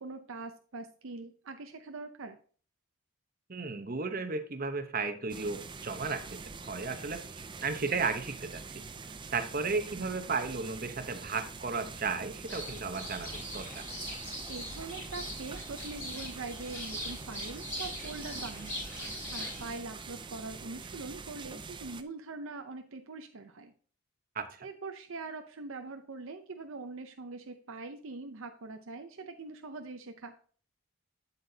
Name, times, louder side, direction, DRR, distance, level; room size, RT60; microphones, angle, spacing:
voice 1, 0.0-2.4 14.5-23.7 24.6-30.4, right 3 dB, 65° right, 6 dB, 0.6 m, -43 dB
voice 2, 3.5-6.4 6.7-8.6 9.3-13.8 24.3-24.5, right 4 dB, 40° right, 8 dB, 0.9 m, -34 dB
sound 1, 5.3-22.0, right 4 dB, 20° right, 0.4 m, -45 dB
sound 2, 12.5-19.7, left 1 dB, 10° left, 3.6 m, -41 dB
8.4 x 8.1 x 2.8 m, 0.43 s
head